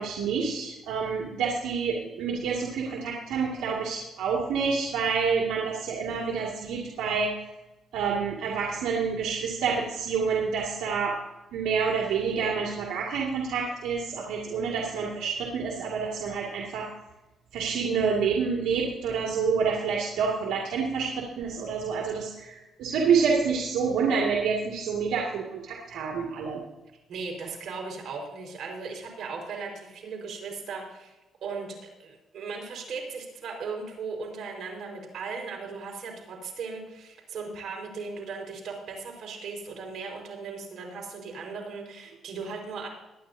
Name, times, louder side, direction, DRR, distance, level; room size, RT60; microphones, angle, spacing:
voice 1, 0.0-7.3 7.9-11.2 11.5-16.9 17.5-26.6, right 5 dB, 85° right, -1 dB, 2.1 m, -28 dB
voice 2, 27.1-31.1 31.4-42.9, right 4 dB, 65° right, 1 dB, 4.5 m, -37 dB
22.0 x 9.9 x 2.7 m, 1.0 s
cardioid pair, 90°, 0 cm